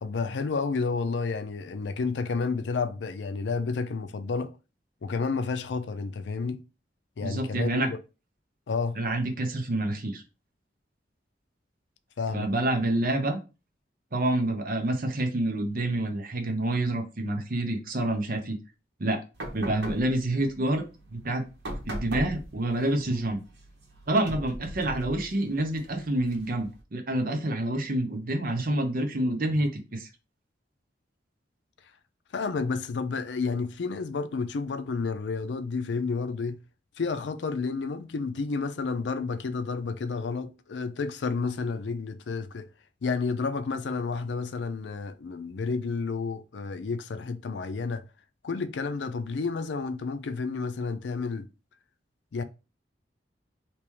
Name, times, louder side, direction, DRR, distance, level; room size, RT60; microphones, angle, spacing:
voice 1, 0.0-4.5 5.0-6.6 7.2-8.0 8.7-9.0 12.2-12.5 32.3-36.6 37.0-42.7 43.0-48.0 48.4-51.5 52.3-52.4, left 4 dB, 80° left, 0.4 m, -30 dB
voice 2, 7.2-7.9 9.0-10.2 12.3-13.4 14.1-18.6 19.0-19.2 19.5-21.5 21.9-23.4 24.1-30.1, right 1 dB, 50° right, 0.8 m, -28 dB
sound 1, 19.3-26.8, right 1 dB, 80° right, 1.1 m, -41 dB
3.4 x 2.9 x 3.1 m
head